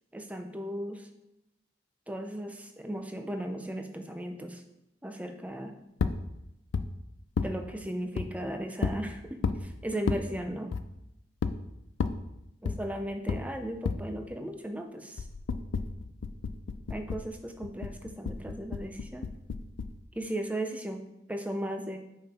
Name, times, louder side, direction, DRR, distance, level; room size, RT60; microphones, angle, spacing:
voice 1, 0.1-1.1 2.1-4.6 5.0-5.7 7.4-10.7 12.6-15.3 16.9-19.3 20.1-22.0, right 1 dB, 5° right, 5 dB, 0.5 m, -36 dB
sound 1, 6.0-6.2 6.7-6.9 7.4-7.5 8.2-8.3 8.8-9.0 9.4-9.6 10.1-10.2 10.7-10.9 11.4-11.5 12.0-12.2 12.7-12.8 13.3-13.4 13.8-14.0 15.2-17.3 17.6-20.0, left 5 dB, 75° left, 0.4 m, -31 dB
5.5 x 5.3 x 4.2 m, 0.88 s
head